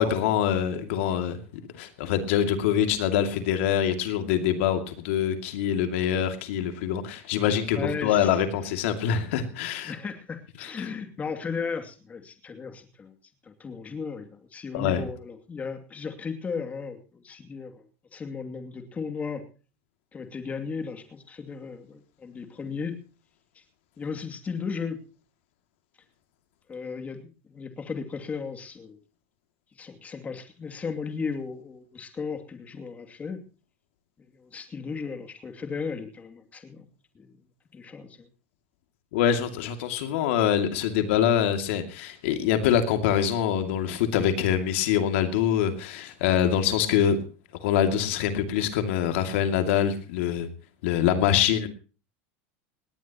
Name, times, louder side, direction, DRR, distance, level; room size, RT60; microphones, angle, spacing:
voice 1, 0.0-1.4 1.8-9.9 10.6-10.9 14.7-15.0 39.1-47.2 47.6-50.5 50.8-51.7, left 9 dB, 70° left, 7 dB, 2.4 m, -24 dB
voice 2, 7.7-8.4 9.0-9.1 9.8-13.1 13.4-17.9 18.1-19.4 20.1-22.9 23.5-23.6 24.0-25.0 26.7-29.0 29.8-33.4 34.2-36.9 37.1-37.3 37.7-38.3, left 5 dB, 20° left, 7 dB, 2.6 m, -35 dB
19.0 x 18.5 x 3.0 m, 0.36 s
supercardioid pair, 120°, 7 cm